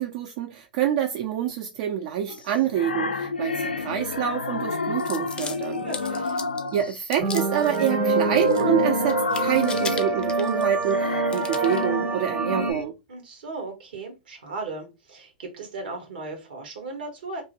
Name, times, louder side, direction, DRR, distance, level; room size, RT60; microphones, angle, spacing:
voice 1, 0.0-5.9 6.7-12.9, right 10 dB, 50° right, 0.3 m, -27 dB
sound 1, 2.3-7.1 7.6-12.8, left 4 dB, 90° left, 0.4 m, -30 dB
sound 2, 5.0-6.7 7.1-7.9 8.2-8.8 9.1-10.9 11.3-11.9, left 5 dB, 20° left, 0.5 m, -37 dB
voice 2, 5.8-6.4 13.1-17.4, right 3 dB, 70° right, 1.1 m, -36 dB
sound 3, 7.2-12.7, right 3 dB, 35° right, 0.7 m, -25 dB
2.6 x 2.1 x 2.8 m
hypercardioid pair, 100°, 5 cm